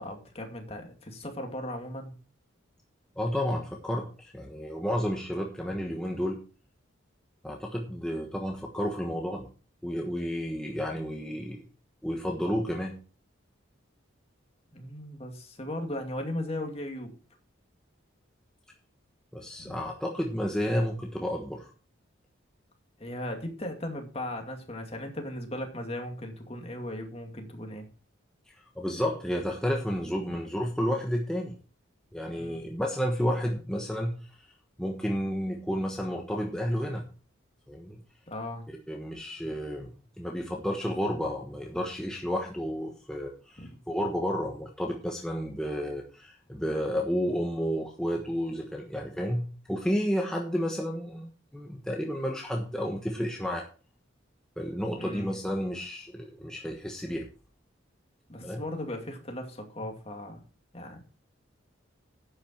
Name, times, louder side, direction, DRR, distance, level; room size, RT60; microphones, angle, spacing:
voice 1, 0.0-2.1 14.7-17.1 19.6-19.8 23.0-27.9 30.3-30.4 32.3-32.7 38.3-38.6 43.6-43.7 54.9-55.3 58.3-60.4 60.7-61.0, left 1 dB, 30° left, 3 dB, 2.4 m, -37 dB
voice 2, 3.2-6.4 7.4-9.5 9.8-11.6 12.0-12.9 19.3-21.7 28.8-31.5 32.1-34.5 34.8-37.0 37.7-38.0 38.7-53.7 54.6-57.2 58.4-58.6, equal, 5° left, 0 dB, 1.2 m, -31 dB
11.5 x 8.9 x 4.5 m, 0.36 s
head